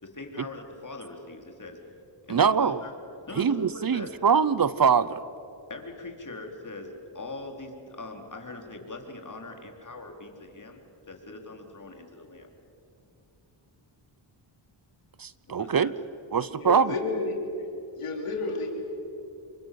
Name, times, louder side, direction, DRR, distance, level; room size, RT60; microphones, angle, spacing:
voice 1, 0.0-1.8 2.3-2.9 3.3-4.1 5.7-12.5 15.5-15.9, left 2 dB, 35° left, 2 dB, 4.2 m, -41 dB
voice 2, 2.3-2.8 3.4-5.2 15.2-15.9 16.3-16.9, right 6 dB, 45° right, 17 dB, 0.8 m, -23 dB
voice 3, 16.3-18.7, left 3 dB, 90° left, 2 dB, 4.0 m, -32 dB
27.5 x 23.5 x 7.8 m, 2.8 s
cardioid pair, 60°, 50 cm